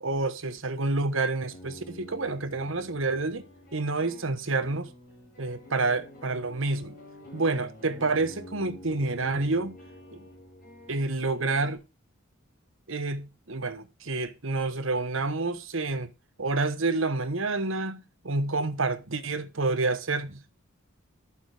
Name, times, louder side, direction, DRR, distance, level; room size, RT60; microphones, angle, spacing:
voice 1, 0.0-3.4 3.7-4.9 5.4-7.0 7.3-9.8 10.1-10.3 10.9-11.8 12.9-16.1 16.4-20.5, right 3 dB, 65° right, 1.2 m, -28 dB
sound 1, 1.5-11.8, left 1 dB, 45° left, 5.9 m, -48 dB
12.5 x 7.2 x 4.9 m
head